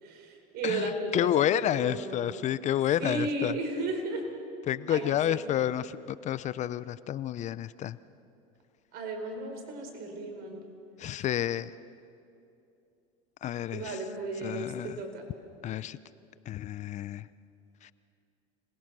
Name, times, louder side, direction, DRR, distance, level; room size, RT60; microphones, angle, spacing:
voice 1, 0.0-2.4 3.0-4.2 4.9-5.4 8.9-10.6 13.7-15.2, right 2 dB, 60° right, 4 dB, 4.5 m, -34 dB
voice 2, 0.6-3.5 4.7-8.0 11.0-11.7 13.4-14.0 14.4-15.0 15.6-16.0 16.5-17.2 17.8-17.9, left 11 dB, 40° left, 17 dB, 0.6 m, -30 dB
26.0 x 20.0 x 6.2 m, 2.6 s
supercardioid pair, 100°, 18 cm